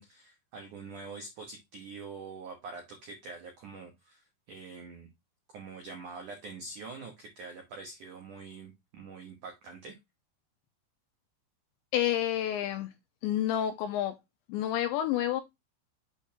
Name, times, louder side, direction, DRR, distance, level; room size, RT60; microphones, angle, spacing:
voice 1, 0.0-5.1 5.5-9.9, right 4 dB, 90° right, 1.7 m, -45 dB
voice 2, 11.9-12.9 13.2-14.1 14.5-15.4, left 11 dB, 90° left, 2.6 m, -29 dB
8.1 x 4.4 x 3.5 m
omnidirectional pair, 5.8 m